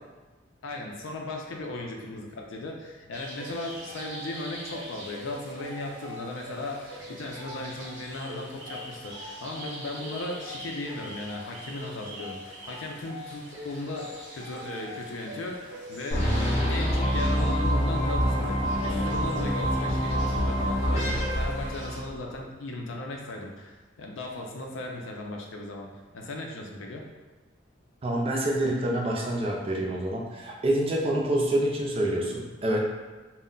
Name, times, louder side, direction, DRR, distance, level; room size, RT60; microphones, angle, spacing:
voice 1, 0.6-16.3 16.7-27.0, left 2 dB, 80° left, 0 dB, 0.5 m, -37 dB
sound 1, 3.1-22.0, equal, 70° right, 0.7 m, -42 dB
sound 2, 16.1-22.3, equal, 35° left, 0.5 m, -26 dB
voice 2, 28.0-32.9, right 1 dB, 30° right, -1 dB, 0.4 m, -27 dB
2.2 x 2.1 x 3.7 m, 1.2 s
head